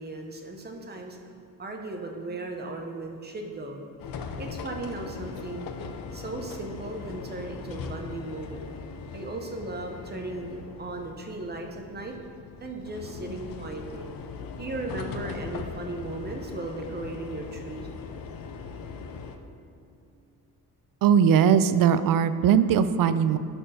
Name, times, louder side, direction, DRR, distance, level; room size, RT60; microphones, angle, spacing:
voice 1, 0.0-3.8 4.4-5.7 6.1-8.6 9.1-12.1 12.6-14.1 14.6-17.9, right 2 dB, 25° right, 3 dB, 0.9 m, -36 dB
sound 1, 4.0-19.4, left 5 dB, 65° left, 0.8 m, -40 dB
voice 2, 21.0-23.4, right 8 dB, 65° right, 12 dB, 0.5 m, -20 dB
11.0 x 4.4 x 5.1 m, 2.7 s
cardioid pair, 140°, 37 cm